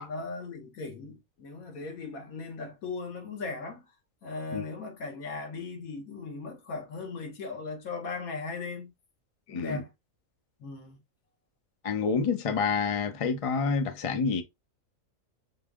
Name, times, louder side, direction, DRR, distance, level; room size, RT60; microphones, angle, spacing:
voice 1, 0.0-3.8 4.2-8.9 9.5-9.9 10.6-11.0, left 4 dB, 75° left, 1.4 m, -38 dB
voice 2, 9.5-9.8 11.8-14.4, left 5 dB, 40° left, 0.5 m, -28 dB
5.5 x 2.0 x 3.5 m
omnidirectional pair, 1.5 m